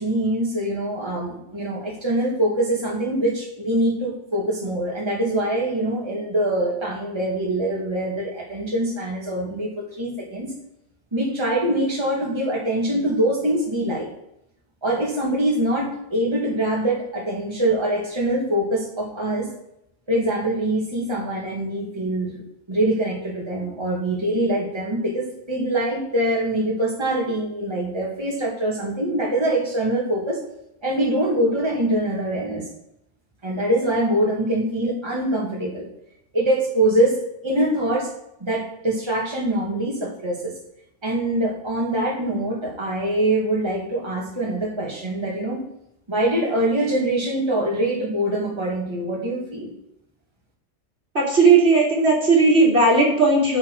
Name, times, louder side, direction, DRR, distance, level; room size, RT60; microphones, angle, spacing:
voice 1, 0.0-10.5 11.1-14.1 14.8-19.5 20.1-22.4 22.7-30.4 30.8-32.7 33.4-35.9 36.3-37.2 37.4-38.1 38.4-40.5 41.0-45.6 46.1-49.7, right 1 dB, 20° right, -3 dB, 2.4 m, -24 dB
voice 2, 51.1-53.6, right 3 dB, 60° right, -1 dB, 3.4 m, -16 dB
9.3 x 9.0 x 4.9 m, 0.80 s
omnidirectional pair, 1.3 m